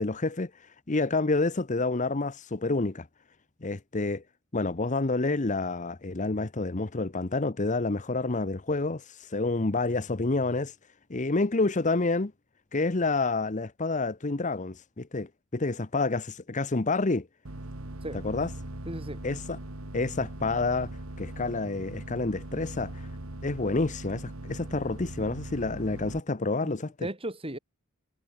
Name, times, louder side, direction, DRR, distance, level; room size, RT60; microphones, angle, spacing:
voice 1, 0.0-3.1 3.6-4.2 4.5-10.7 11.1-12.3 12.7-17.3 18.2-18.5 19.2-19.6 19.9-20.9 21.2-23.1 23.4-26.9, left 3 dB, 35° left, 0.9 m, -28 dB
sound 1, 17.4-26.2, right 1 dB, 75° right, 2.7 m, -40 dB
voice 2, 18.9-19.2 26.6-27.6, right 1 dB, 25° right, 6.7 m, -36 dB
head